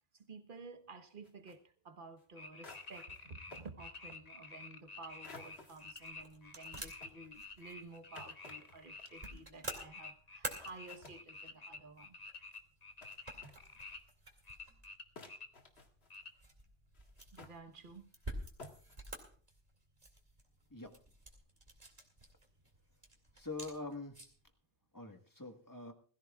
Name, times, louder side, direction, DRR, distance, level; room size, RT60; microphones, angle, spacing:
voice 1, 0.1-12.2 17.3-18.1, right 3 dB, 55° right, 1.3 m, -53 dB
sound 1, 1.2-1.6 2.2-2.3 2.6-3.2 3.5-3.7 5.2-5.8 6.5-9.5 10.3-10.4 10.6-11.2 12.3-12.6 13.0-13.2 13.4-14.0 14.7-14.8 15.2-16.2 16.9-17.6 18.2-18.3 18.6-19.0, left 2 dB, 90° left, 2.1 m, -55 dB
sound 2, 2.4-9.3 9.6-14.0 14.5-15.5 16.1-16.3, left 4 dB, 40° left, 1.2 m, -50 dB
sound 3, 4.9-24.5, right 1 dB, 40° right, 2.4 m, -51 dB
voice 2, 23.3-24.2 24.9-25.9, left 3 dB, 20° left, 1.5 m, -44 dB
21.0 x 14.5 x 2.4 m
omnidirectional pair, 1.0 m